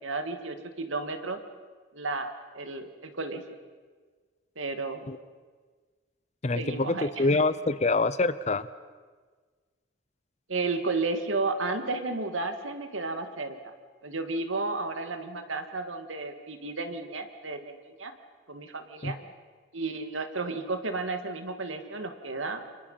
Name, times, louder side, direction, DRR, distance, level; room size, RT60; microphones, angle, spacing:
voice 1, 0.0-1.4 1.9-3.4 4.6-5.1 6.5-7.4 10.5-13.7 14.0-18.1 18.5-19.2 19.7-22.6, right 3 dB, 90° right, 7 dB, 2.3 m, -33 dB
voice 2, 6.4-8.7 19.0-19.2, left 3 dB, 35° left, 15 dB, 0.7 m, -26 dB
29.0 x 26.5 x 5.8 m, 1.5 s
head